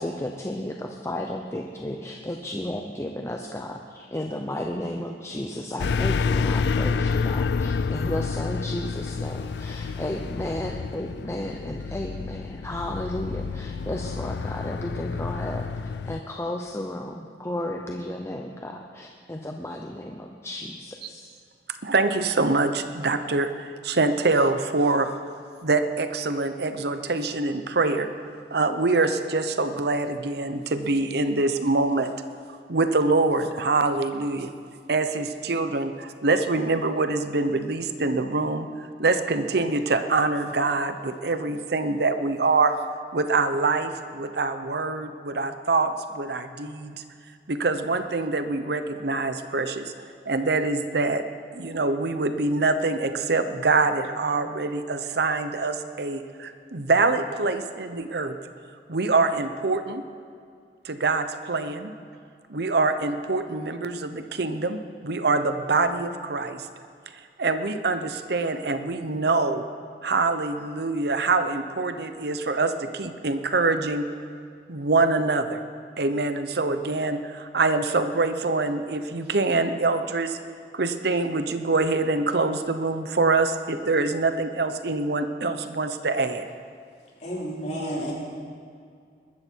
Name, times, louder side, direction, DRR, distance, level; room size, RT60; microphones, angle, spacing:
voice 1, 0.0-15.6 16.0-21.2, left 1 dB, 15° left, 2 dB, 0.8 m, -33 dB
sound 1, 5.8-16.2, left 5 dB, 70° left, 0.4 m, -29 dB
voice 2, 21.8-25.1 25.6-28.1 28.5-32.1 32.7-34.5 34.9-42.7 43.1-47.0 47.5-49.9 50.3-51.2 51.5-58.4 58.9-60.0 60.8-61.9 62.5-66.7 67.4-69.6 70.0-74.0 74.7-75.6 76.0-80.4 80.7-86.5, right 3 dB, 65° right, 9 dB, 0.9 m, -25 dB
voice 3, 87.2-88.1, equal, 45° left, -5 dB, 4.6 m, -31 dB
21.5 x 13.0 x 4.6 m, 2.3 s
head